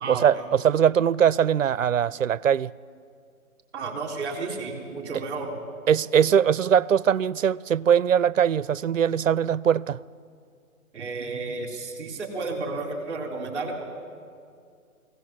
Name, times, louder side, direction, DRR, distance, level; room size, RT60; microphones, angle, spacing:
voice 1, 0.1-2.7 5.9-10.0, right 8 dB, 65° right, 0.5 m, -21 dB
voice 2, 3.7-5.5 10.9-13.8, right 3 dB, 20° right, 3.5 m, -32 dB
23.5 x 17.0 x 7.5 m
hypercardioid pair, 170°, 43 cm